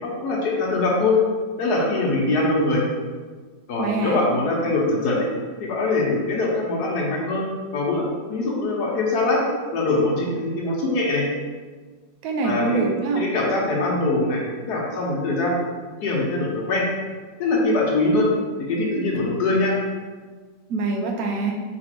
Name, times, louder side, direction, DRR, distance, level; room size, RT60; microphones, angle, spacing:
voice 1, 0.0-1.2 1.6-2.8 3.7-5.3 5.6-9.4 9.7-11.3 12.4-12.8 13.1-15.6 16.0-16.9 17.4-18.3 18.7-19.8, left 2 dB, 70° left, -2 dB, 1.4 m, -22 dB
voice 2, 3.8-4.2 12.2-13.3 20.7-21.6, right 3 dB, 65° right, 2 dB, 1.0 m, -24 dB
3.4 x 3.1 x 4.3 m, 1.5 s
omnidirectional pair, 1.8 m